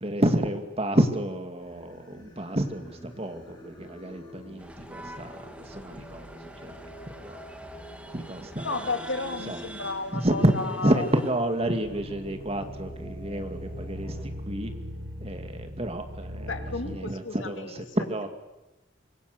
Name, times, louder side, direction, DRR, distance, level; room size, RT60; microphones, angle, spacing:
voice 1, 0.0-6.8 7.2-7.4 8.1-9.7 10.1-14.2 14.5-14.7 15.2-18.3, right 1 dB, 30° right, 7 dB, 2.4 m, -29 dB
Singing, 1.6-14.2, equal, 25° left, 5.4 m, -48 dB
sound 1, 4.6-11.3, right 1 dB, 5° right, 2.3 m, -45 dB
voice 2, 8.6-11.1 16.4-18.0, left 3 dB, 80° left, 7 dB, 2.5 m, -33 dB
sound 2, 11.8-17.0, equal, 80° right, 4.2 m, -39 dB
26.5 x 23.5 x 6.9 m, 1.0 s
head